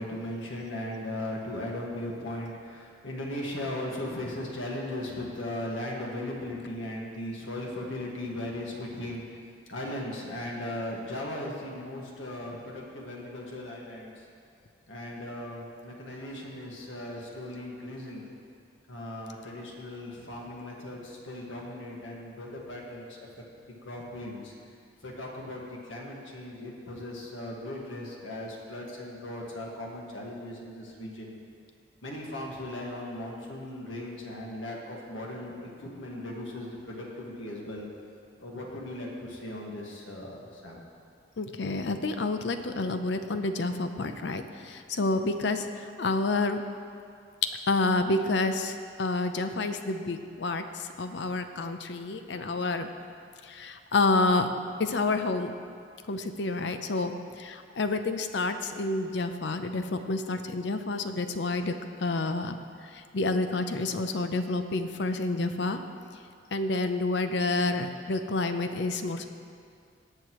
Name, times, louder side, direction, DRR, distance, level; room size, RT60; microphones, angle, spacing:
voice 1, 0.0-9.2 9.7-14.1 14.9-18.2 18.9-23.4 23.8-24.5 25.0-31.3 32.0-37.9 38.4-40.8, left 1 dB, 90° left, -2 dB, 1.7 m, -37 dB
voice 2, 41.4-46.6 47.7-52.9 53.4-54.5 54.8-55.5 56.1-61.7 62.0-62.6 62.9-65.8 66.5-69.3, left 2 dB, 70° left, 8 dB, 0.6 m, -29 dB
19.0 x 6.6 x 3.1 m, 2.3 s
head